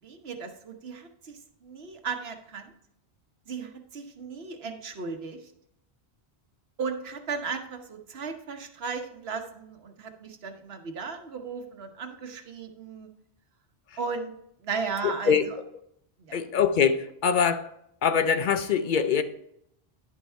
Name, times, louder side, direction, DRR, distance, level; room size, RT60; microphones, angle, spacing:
voice 1, 0.0-2.7 3.5-5.4 6.8-13.1 14.0-14.3 14.6-15.6 16.3-16.4, right 5 dB, 75° right, 1.2 m, -36 dB
voice 2, 15.0-15.5 16.3-17.7 18.0-19.2, left 7 dB, 55° left, 0.7 m, -23 dB
10.5 x 5.6 x 4.4 m
omnidirectional pair, 1.1 m